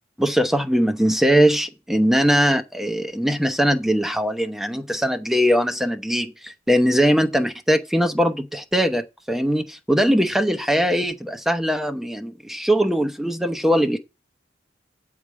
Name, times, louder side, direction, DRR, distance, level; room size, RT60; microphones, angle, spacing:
voice 1, 0.2-14.0, equal, ahead, 0.8 m, -21 dB
8.0 x 4.9 x 7.3 m
head